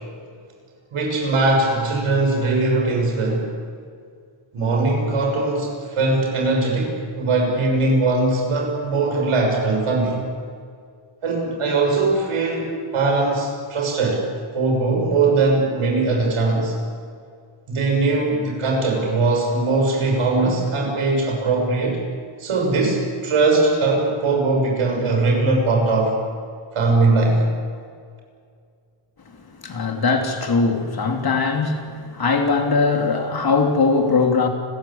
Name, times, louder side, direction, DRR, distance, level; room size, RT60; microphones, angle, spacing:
voice 1, 0.9-3.5 4.5-10.2 11.2-14.2 14.5-16.7 17.7-22.0 22.4-26.2 26.7-27.5, right 3 dB, 90° right, 1 dB, 6.5 m, -20 dB
voice 2, 29.6-34.5, left 4 dB, 45° left, 4 dB, 3.2 m, -20 dB
29.5 x 14.5 x 8.8 m, 2.2 s
wide cardioid pair, 130°, 49 cm